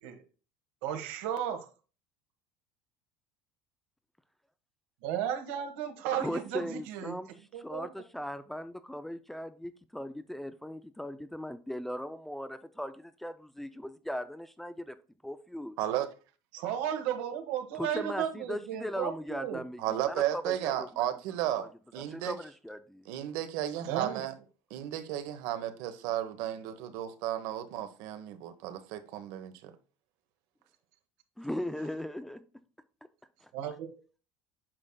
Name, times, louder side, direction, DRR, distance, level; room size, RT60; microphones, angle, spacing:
voice 1, 0.8-1.7 5.0-7.1 7.5-7.9 16.5-19.6 23.8-24.2 33.5-33.7, right 10 dB, 85° right, 1.4 m, -34 dB
voice 2, 6.2-7.3 7.5-15.0 15.2-15.8 17.8-21.1 21.6-21.7 22.1-23.0 31.4-32.4, left 1 dB, 5° left, 0.3 m, -38 dB
voice 3, 15.8-16.1 19.8-22.3 23.1-24.3 24.7-29.7, right 12 dB, 65° right, 1.0 m, -34 dB
8.8 x 6.4 x 2.2 m
cardioid pair, 165°, 7 cm